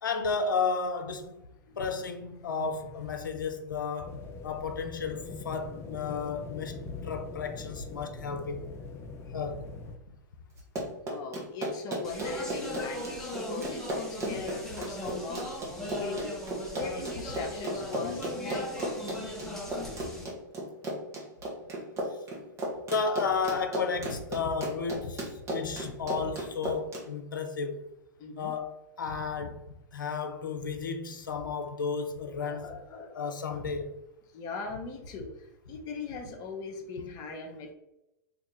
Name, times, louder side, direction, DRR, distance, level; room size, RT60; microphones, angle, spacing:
voice 1, 0.0-1.3 1.8-8.7 9.3-9.7 22.7-27.8 28.4-29.6 29.9-32.8 33.1-34.0, left 5 dB, 85° left, 0.5 m, -33 dB
voice 2, 2.4-2.9 11.1-15.5 15.9-16.3 16.7-19.1 28.2-28.6 32.4-33.6 34.3-37.7, left 4 dB, 40° left, 0.8 m, -40 dB
sound 1, 4.0-10.0, left 4 dB, 25° left, 0.4 m, -42 dB
Run, 10.6-27.0, right 1 dB, 30° right, 1.1 m, -35 dB
Speech, 12.0-20.2, left 1 dB, 5° left, 0.9 m, -39 dB
2.9 x 2.7 x 3.7 m
hypercardioid pair, 105°, 11 cm